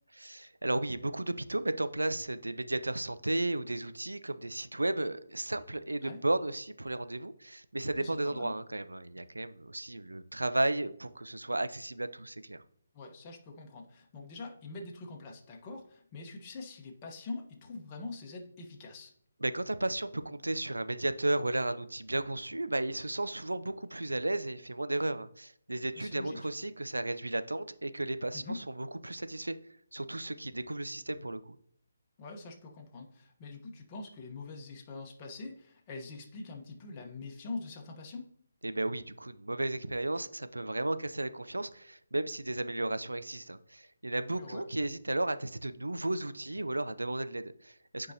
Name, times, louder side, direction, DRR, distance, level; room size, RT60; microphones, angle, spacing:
voice 1, 0.2-12.6 19.4-29.5 29.9-31.6 38.6-48.1, right 2 dB, 85° right, 0.5 m, -34 dB
voice 2, 8.0-8.5 12.9-19.1 26.0-26.5 28.3-28.6 32.2-38.3 44.4-44.6 48.0-48.1, left 3 dB, 25° left, 1.1 m, -44 dB
9.4 x 4.7 x 2.8 m
figure-of-eight pair, 145°, 0 cm